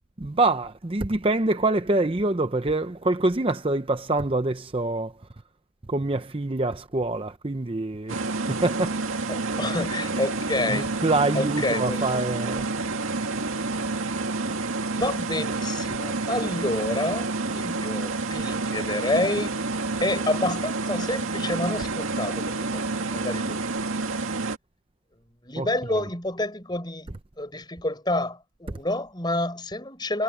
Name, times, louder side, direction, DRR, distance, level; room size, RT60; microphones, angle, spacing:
voice 1, 0.2-5.1 5.9-8.2 8.5-9.0 10.7-12.7 25.6-26.0, right 2 dB, 25° right, 0.6 m, -25 dB
sound 1, 8.1-24.6, right 3 dB, 90° right, 2.1 m, -29 dB
voice 2, 9.3-11.0 11.3-12.2 13.6-14.2 14.9-19.6 20.0-23.6 25.4-30.2, left 1 dB, 20° left, 5.3 m, -29 dB
head